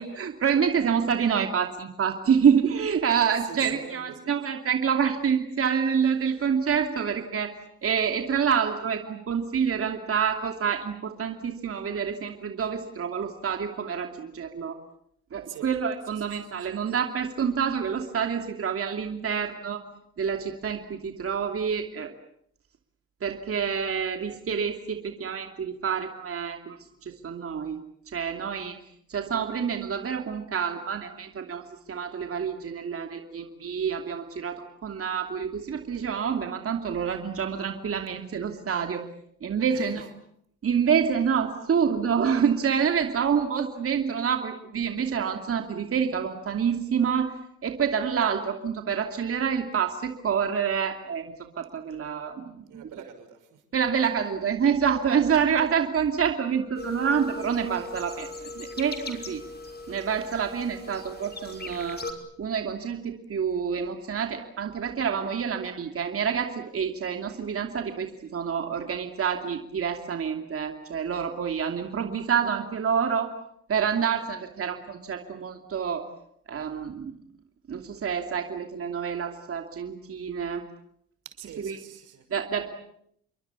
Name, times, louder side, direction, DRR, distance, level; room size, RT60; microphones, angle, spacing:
voice 1, 0.0-7.5 7.8-14.8 15.3-19.8 20.2-22.1 23.2-26.8 27.0-27.8 28.1-28.7 29.1-31.6 31.9-39.0 39.4-40.1 40.6-47.3 47.6-52.8 53.7-58.3 58.6-59.4 59.9-62.0 62.4-73.3 73.7-76.0 76.5-77.2 77.7-80.6 81.6-81.8 82.3-82.7, right 7 dB, 50° right, 5 dB, 2.9 m, -27 dB
voice 2, 3.4-4.3 15.5-15.7 16.1-16.8 39.7-40.1 52.7-53.6 81.2-82.2, right 8 dB, 85° right, 7 dB, 5.9 m, -45 dB
sound 1, 56.8-62.1, left 3 dB, 35° left, 5.7 m, -39 dB
29.0 x 23.0 x 8.5 m, 0.71 s
cardioid pair, 90°, 30 cm